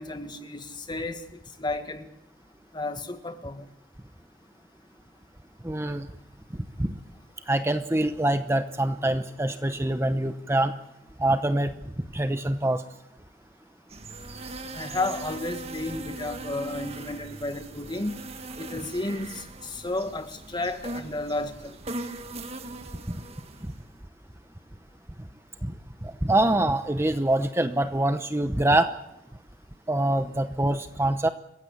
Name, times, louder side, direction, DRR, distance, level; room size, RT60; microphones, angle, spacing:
voice 1, 0.0-2.1 2.7-3.6 14.7-18.1 18.6-21.8, left 2 dB, 25° left, 8 dB, 1.7 m, -32 dB
voice 2, 5.6-6.1 6.8-7.0 7.5-10.7 11.2-11.7 12.1-12.8 23.1-23.2 25.6-25.7 26.0-28.9 29.9-31.3, right 1 dB, 15° right, 9 dB, 0.9 m, -25 dB
sound 1, 13.9-23.8, right 2 dB, 35° right, 1.7 m, -40 dB
28.0 x 15.5 x 8.3 m, 0.82 s
head